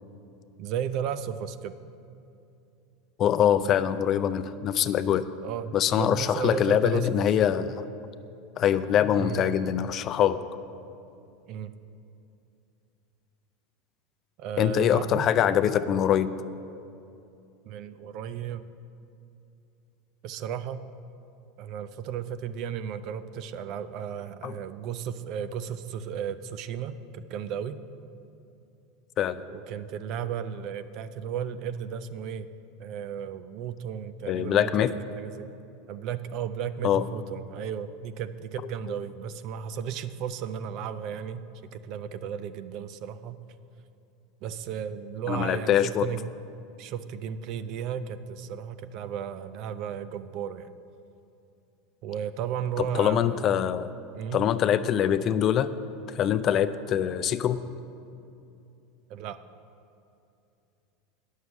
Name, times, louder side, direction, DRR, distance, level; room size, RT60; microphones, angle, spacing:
voice 1, 0.6-1.7 5.4-7.1 9.1-9.4 11.5-11.7 14.4-15.3 17.7-18.7 20.2-20.9 21.6-27.8 29.5-32.5 32.8-35.5 35.9-43.4 44.4-46.2 46.8-50.7 52.0-53.4 54.1-54.5 59.1-59.4, right 8 dB, 55° right, 12 dB, 0.5 m, -34 dB
voice 2, 3.2-5.3 5.7-7.9 8.6-10.4 14.6-16.3 24.4-24.6 29.2-29.4 34.3-34.9 36.8-37.0 45.3-46.1 52.8-53.9 54.3-55.7 56.1-57.6, left 10 dB, 45° left, 12 dB, 0.4 m, -24 dB
9.3 x 6.4 x 7.3 m, 2.7 s
hypercardioid pair, 100°, 0 cm